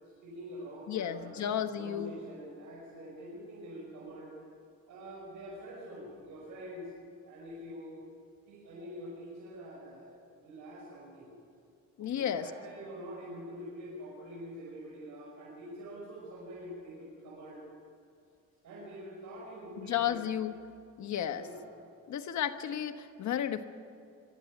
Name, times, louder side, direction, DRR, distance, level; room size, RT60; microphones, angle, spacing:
voice 1, 0.2-4.3 4.9-6.9 7.2-8.0 8.5-11.3 12.0-17.6 18.6-20.2 21.3-21.7, equal, 80° right, -4 dB, 5.7 m, -45 dB
voice 2, 0.9-2.1 12.0-12.5 19.8-20.6 21.0-21.4 22.1-23.6, left 10 dB, 70° left, 8 dB, 1.3 m, -33 dB
22.5 x 12.5 x 9.6 m, 2.3 s
cardioid pair, 90°, 30 cm